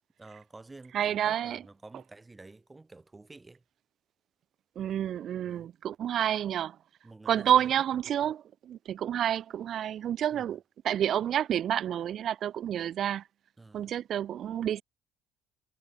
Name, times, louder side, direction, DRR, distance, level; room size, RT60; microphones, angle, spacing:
voice 1, 0.2-3.6 5.4-5.7 7.0-7.7 8.2-8.3 10.3-10.6 13.6-13.9, right 3 dB, 15° right, 1.3 m, -50 dB
voice 2, 0.9-1.6 4.8-6.8 7.3-13.2 13.7-14.8, right 10 dB, 55° right, 0.4 m, -29 dB
supercardioid pair, 95°, 0 cm